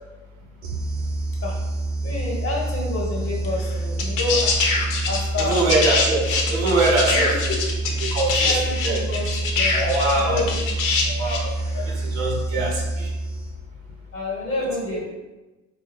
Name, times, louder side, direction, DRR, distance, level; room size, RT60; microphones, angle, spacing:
sound 1, 0.6-13.8, right 2 dB, 35° right, 0.5 m, -27 dB
voice 1, 2.0-4.5 5.1-5.6 7.1-7.7 8.4-9.3 9.6-10.6 11.7-11.8 12.5-12.6 14.1-15.0, left 3 dB, 30° left, -2 dB, 1.3 m, -28 dB
sound 2, 3.4-3.5 4.0-11.5 12.7-12.8, left 4 dB, 50° left, 0.9 m, -24 dB
voice 2, 5.4-7.3 8.1-8.6 8.8-9.0 9.8-10.4 11.0-11.5 11.8-13.1 14.9-15.0, right 2 dB, 55° right, -2 dB, 1.2 m, -23 dB
4.1 x 2.3 x 3.5 m, 1.1 s
hypercardioid pair, 70°, 40 cm